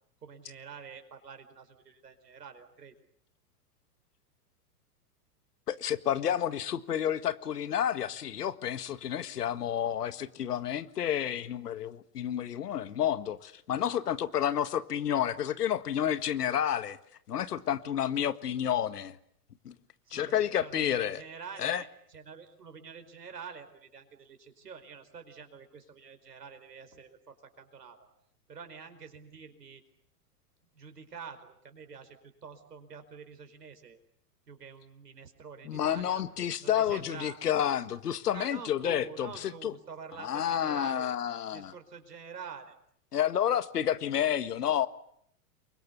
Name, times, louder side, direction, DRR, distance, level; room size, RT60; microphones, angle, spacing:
voice 1, 0.2-2.9 20.1-28.0 28.5-29.8 30.7-34.0 34.5-36.2 36.6-37.4 38.3-41.1 41.5-42.8, right 6 dB, 90° right, 4.9 m, -47 dB
voice 2, 5.7-17.0 17.3-19.2 19.6-19.7 20.1-21.2 21.6-21.8 35.6-39.7 40.2-41.7 43.1-44.9, left 10 dB, 80° left, 1.9 m, -30 dB
29.0 x 24.0 x 8.3 m
hypercardioid pair, 105°, 46 cm